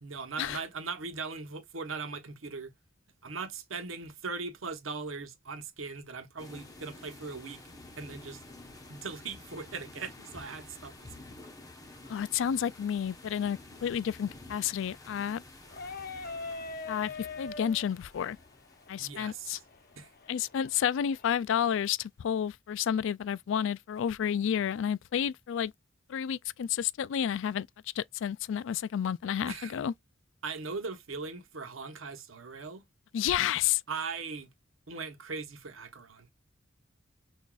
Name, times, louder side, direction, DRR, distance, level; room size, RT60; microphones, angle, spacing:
voice 1, 0.0-2.7 3.2-7.6 8.0-8.4 8.9-11.3 19.0-19.6 19.9-20.1 29.5-29.8 30.4-32.8 33.9-34.5 34.9-36.3, right 4 dB, 90° right, 1.0 m, -39 dB
sound 1, 6.4-20.9, left 2 dB, 20° left, 1.1 m, -51 dB
voice 2, 12.1-15.4 16.9-17.1 17.4-18.4 18.9-19.6 20.3-25.7 26.1-27.7 28.0-29.9 33.1-33.8, left 9 dB, 70° left, 0.3 m, -30 dB
sound 2, 15.7-21.3, left 4 dB, 50° left, 0.7 m, -43 dB
6.0 x 2.6 x 2.4 m
head